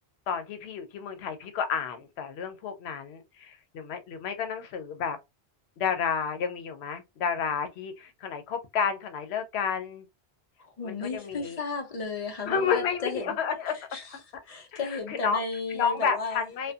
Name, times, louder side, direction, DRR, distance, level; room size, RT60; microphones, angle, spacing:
voice 1, 0.3-5.2 5.8-10.1 10.8-11.6 12.5-13.7 14.7-15.4 15.7-16.7, left 6 dB, 85° left, 0.8 m, -31 dB
voice 2, 10.6-13.4 13.9-14.0 14.4-16.4, left 3 dB, 45° left, 0.6 m, -34 dB
2.6 x 2.2 x 2.3 m
omnidirectional pair, 1.1 m